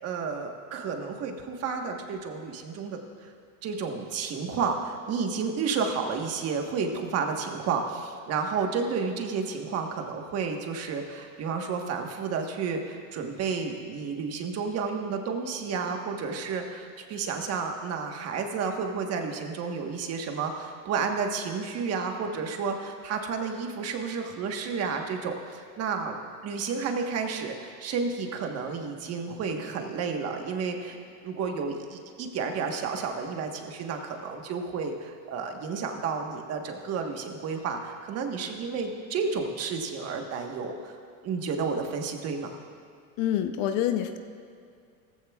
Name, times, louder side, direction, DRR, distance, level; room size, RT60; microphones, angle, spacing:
voice 1, 0.0-3.3 3.6-26.2 26.4-31.0 31.2-41.0 41.2-42.6, right 5 dB, 35° right, 3 dB, 1.3 m, -31 dB
voice 2, 43.2-44.2, left 10 dB, 50° left, 8 dB, 0.7 m, -26 dB
17.0 x 15.0 x 2.4 m, 2.3 s
supercardioid pair, 140°, 43 cm